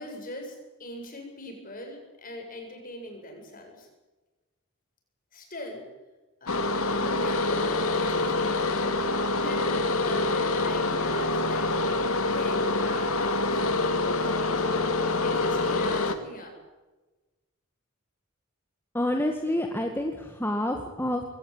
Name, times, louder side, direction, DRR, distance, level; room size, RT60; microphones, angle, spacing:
voice 1, 0.0-3.9 5.3-5.9 6.4-11.7 12.2-14.6 15.2-16.6, left 1 dB, 40° left, 3 dB, 8.0 m, -41 dB
sound 1, 6.5-16.2, left 2 dB, 75° left, 2.4 m, -26 dB
voice 2, 18.9-21.2, left 1 dB, 10° left, 3 dB, 2.0 m, -28 dB
23.0 x 18.0 x 9.0 m, 1.1 s
head